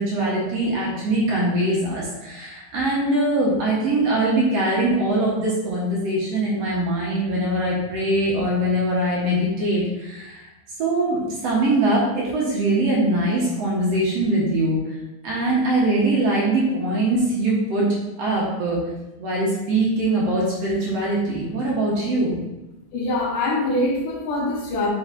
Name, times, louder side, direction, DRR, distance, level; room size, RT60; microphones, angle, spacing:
voice 1, 0.0-10.5 10.8-15.0 15.2-18.8 19.2-22.4, right 1 dB, 60° right, -5 dB, 2.1 m, -22 dB
voice 2, 22.9-24.9, left 2 dB, 80° left, 0 dB, 2.5 m, -23 dB
5.4 x 4.8 x 3.8 m, 0.99 s
omnidirectional pair, 3.8 m